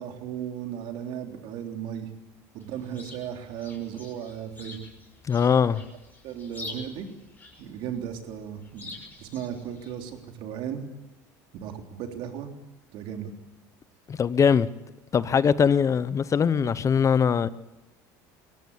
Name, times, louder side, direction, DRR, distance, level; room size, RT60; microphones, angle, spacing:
voice 1, 0.0-2.1 2.5-4.8 6.2-7.1 7.6-10.8 11.6-12.5 12.9-13.3, right 9 dB, 65° right, 3.6 m, -36 dB
Chirp tweet, 2.6-10.2, left 2 dB, 20° left, 6.0 m, -46 dB
voice 2, 5.3-5.8 14.1-14.7 15.1-17.5, left 7 dB, 35° left, 0.8 m, -21 dB
22.5 x 17.5 x 8.5 m
supercardioid pair, 90°, 10 cm